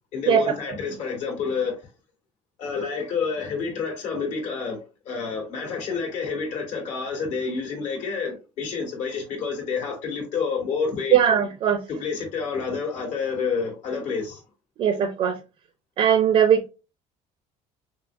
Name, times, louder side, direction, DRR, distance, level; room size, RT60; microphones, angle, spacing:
voice 1, 0.1-1.8 2.6-4.8 5.1-11.2 11.9-14.4, left 5 dB, 65° left, 2.0 m, -29 dB
voice 2, 11.1-11.8 14.8-15.4 16.0-16.7, right 9 dB, 45° right, 0.5 m, -19 dB
5.7 x 2.0 x 2.5 m
cardioid pair, 150°, 13 cm